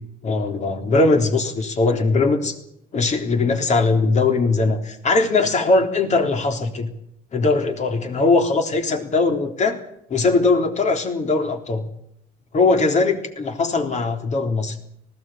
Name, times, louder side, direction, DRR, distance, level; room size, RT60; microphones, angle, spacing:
voice 1, 0.2-2.5 2.9-6.9 7.3-9.8 10.1-11.9 12.5-14.8, left 3 dB, 45° left, 5 dB, 3.7 m, -20 dB
19.5 x 16.0 x 9.3 m, 0.75 s
cardioid pair, 110°, 17 cm